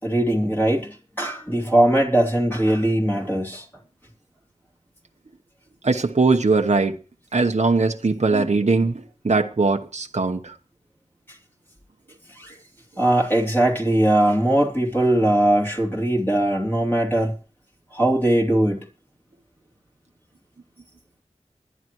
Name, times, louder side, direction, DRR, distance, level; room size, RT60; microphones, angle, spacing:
voice 1, 0.0-3.7 8.3-8.5 12.3-12.6 13.0-17.3 17.9-18.9, right 1 dB, 15° left, 3.1 m, -20 dB
voice 2, 5.8-7.0 7.3-10.6, right 3 dB, 60° right, 0.9 m, -20 dB
20.5 x 11.0 x 3.0 m
wide cardioid pair, 45°, 13 cm